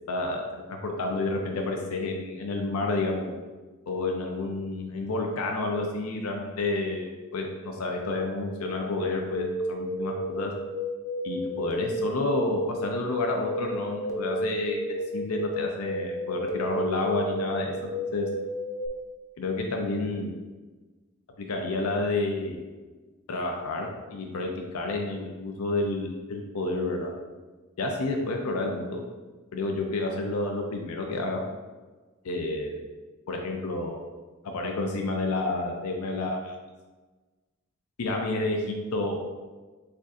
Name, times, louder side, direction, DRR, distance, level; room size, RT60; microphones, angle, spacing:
voice 1, 0.1-3.3 3.9-10.5 11.2-18.3 19.4-20.3 21.4-22.7 23.3-27.1 27.8-29.0 29.5-31.4 32.2-32.8 33.3-34.1 34.4-36.5 38.0-39.2, left 2 dB, 90° left, 2 dB, 0.5 m, -30 dB
sound 1, 9.3-18.9, equal, 15° left, 0.4 m, -32 dB
6.5 x 2.5 x 2.4 m, 1.3 s
head